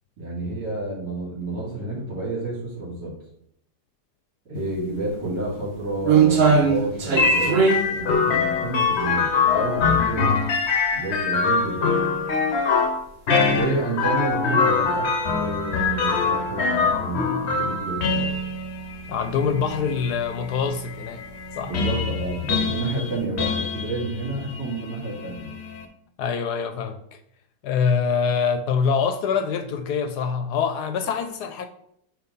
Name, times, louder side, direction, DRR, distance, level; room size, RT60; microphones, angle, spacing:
voice 1, 0.2-3.1 4.5-10.3 10.9-11.9 13.5-18.3 21.6-25.5, right 2 dB, 75° right, 3.4 m, -30 dB
sound 1, 4.7-4.8 5.3-10.3 10.7-10.8 11.5-11.7 12.0-12.1 13.0-13.1 13.4-13.6 14.1-14.3 14.6-14.7 16.8-16.9 18.2-18.5 18.9-19.3 19.7-19.9 20.2-20.3 21.3-21.5 22.1-22.8 23.2-23.3, right 5 dB, 40° right, 1.0 m, -21 dB
sound 2, 7.2-25.9, left 4 dB, 55° left, 0.7 m, -24 dB
voice 2, 19.1-21.2 21.6-21.7 26.2-27.2 27.6-31.7, left 6 dB, 75° left, 1.0 m, -25 dB
8.8 x 3.2 x 4.0 m
omnidirectional pair, 1.9 m